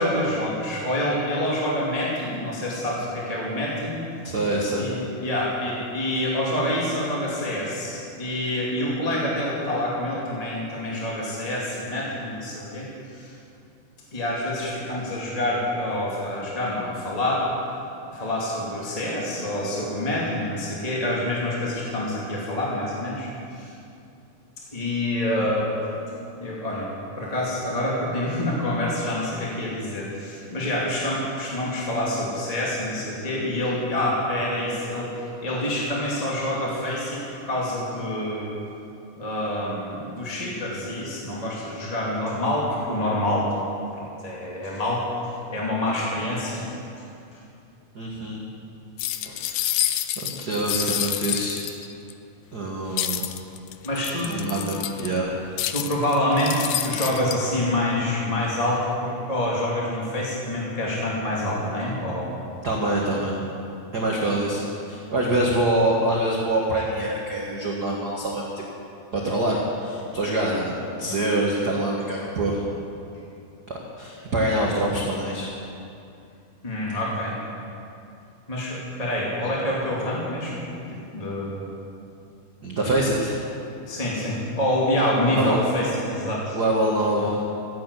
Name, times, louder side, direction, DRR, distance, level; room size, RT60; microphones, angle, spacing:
voice 1, 0.0-4.0 4.7-13.3 14.1-17.4 18.1-23.7 24.7-25.8 26.4-26.9 27.2-35.1 35.4-38.5 39.1-43.5 44.0-46.7 47.0-47.1 47.3-47.4 50.4-50.5 53.8-54.3 55.7-62.3 76.6-77.3 78.5-81.6 83.9-86.6, left 1 dB, 15° left, -5 dB, 1.6 m, -27 dB
voice 2, 4.2-4.8 25.3-25.5 47.9-48.4 49.2-49.8 50.2-51.7 52.5-53.2 54.2-55.4 62.6-63.4 63.9-68.5 69.1-72.6 74.0-75.5 82.6-83.4 85.3-85.6 86.5-87.4, right 1 dB, 55° right, -3 dB, 1.1 m, -25 dB
sound 1, 49.0-52.1 53.0-55.2 55.6-57.3, left 13 dB, 85° left, 2.0 m, -28 dB
15.0 x 10.5 x 8.2 m, 2.7 s
omnidirectional pair, 4.4 m